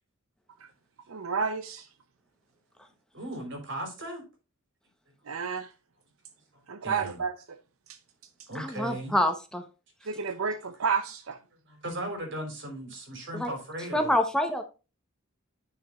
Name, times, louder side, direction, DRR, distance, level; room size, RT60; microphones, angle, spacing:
voice 1, 1.1-1.9 5.3-5.7 6.7-7.3 7.9-8.0 10.1-11.4, right 5 dB, 85° right, 0.6 m, -31 dB
voice 2, 3.1-4.2 6.5-7.2 8.5-9.2 11.7-14.2, right 1 dB, 60° right, 3.4 m, -37 dB
voice 3, 8.5-9.6 13.3-13.5 13.9-14.6, left 1 dB, 5° left, 0.9 m, -26 dB
10.5 x 6.1 x 2.4 m
head